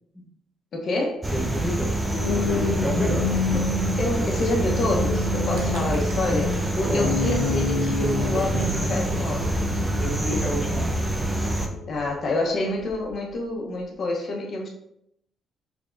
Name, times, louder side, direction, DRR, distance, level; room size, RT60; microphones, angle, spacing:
voice 1, 0.7-1.2 3.5-6.5 6.8-9.6 11.9-14.7, left 2 dB, 55° left, -1 dB, 0.8 m, -27 dB
sound 1, 1.2-11.7, right 2 dB, 15° right, 0.6 m, -26 dB
voice 2, 1.3-1.9 2.3-3.3 5.6-5.7 6.9-7.1 10.0-10.9, equal, 10° left, -3 dB, 0.9 m, -29 dB
sound 2, 2.0-12.3 12.8-13.1, left 4 dB, 75° left, 0.4 m, -30 dB
Gurgling, 5.6-10.3, right 2 dB, 85° right, 0.7 m, -34 dB
3.7 x 3.4 x 2.5 m, 0.77 s
cardioid pair, 90°, 0 cm